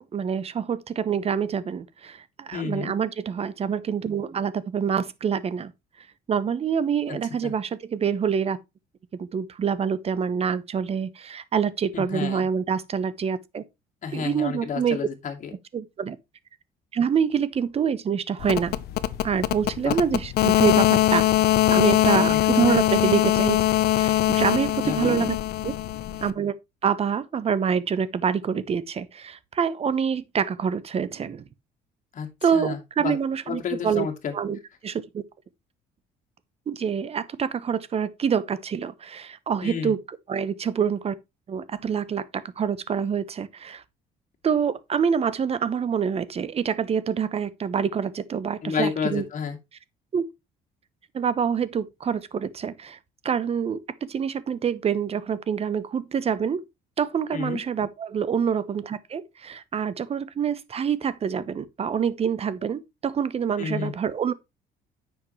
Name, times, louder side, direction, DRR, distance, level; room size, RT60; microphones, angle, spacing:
voice 1, 0.1-5.7 6.3-8.6 9.2-13.6 14.1-15.0 15.7-16.2 16.9-18.7 19.2-21.3 21.7-23.6 23.9-25.4 25.6-25.7 26.2-26.5 26.8-31.4 32.4-34.1 34.3-35.2 36.7-41.1 41.5-43.8 44.4-49.2 50.1-50.2 51.1-53.0 53.2-56.6 57.0-64.3, right 7 dB, 35° right, 0.9 m, -26 dB
voice 2, 2.5-2.9 7.1-7.2 7.4-7.5 11.9-12.5 14.0-15.5 19.8-20.0 22.1-22.4 24.8-25.2 32.1-33.2 33.5-34.3 39.6-39.9 48.6-49.6 57.3-57.6 63.6-63.9, left 6 dB, 50° left, 2.3 m, -31 dB
sound 1, 18.4-26.3, left 13 dB, 70° left, 0.8 m, -22 dB
9.5 x 6.4 x 3.2 m
cardioid pair, 110°, 17 cm